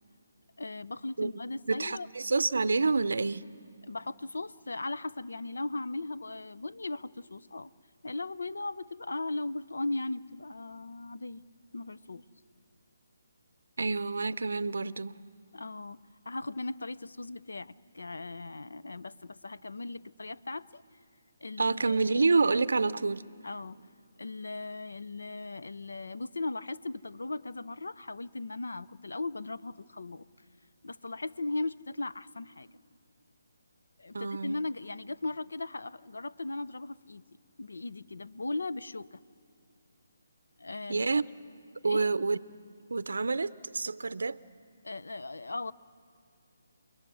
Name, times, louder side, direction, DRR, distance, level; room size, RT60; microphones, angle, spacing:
voice 1, 0.6-2.1 3.9-7.7 8.0-11.4 11.7-12.3 15.5-20.8 21.4-22.2 23.4-23.8 24.2-30.3 30.8-32.7 34.0-37.2 37.6-39.2 40.6-41.1 41.8-42.1 44.8-45.7, left 2 dB, 80° left, 15 dB, 0.7 m, -38 dB
voice 2, 1.7-3.4 13.8-15.2 21.6-23.2 34.1-34.6 40.9-41.3 41.8-42.4 42.9-44.4, right 3 dB, 75° right, 16 dB, 0.6 m, -28 dB
29.5 x 21.0 x 6.3 m, 2.4 s
figure-of-eight pair, 150°, 0 cm